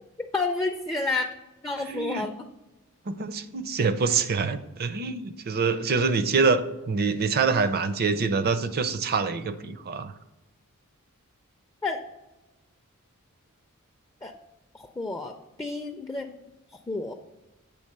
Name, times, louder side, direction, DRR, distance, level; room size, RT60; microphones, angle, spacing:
voice 1, 0.3-1.3 1.6-2.4 11.8-12.0 14.2-14.3 14.7-15.3 15.6-16.4 16.9-17.1, left 3 dB, 10° left, 3 dB, 0.4 m, -29 dB
voice 2, 1.9-2.3 3.1-10.1, right 4 dB, 45° right, 12 dB, 0.5 m, -25 dB
8.4 x 3.4 x 6.6 m, 1.1 s
head